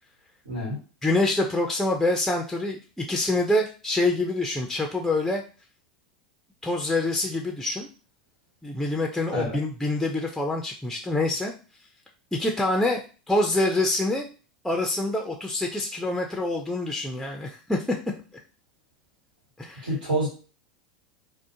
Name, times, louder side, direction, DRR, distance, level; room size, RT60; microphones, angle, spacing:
voice 1, 0.4-0.8 9.3-9.6 19.8-20.3, right 1 dB, 85° right, -4 dB, 1.3 m, -27 dB
voice 2, 1.0-5.4 6.6-7.9 8.6-11.5 12.3-13.0 13.3-14.3 14.6-17.8 19.6-19.9, left 2 dB, 5° left, 2 dB, 0.4 m, -26 dB
2.4 x 2.0 x 2.7 m, 0.35 s
hypercardioid pair, 90°, 4 cm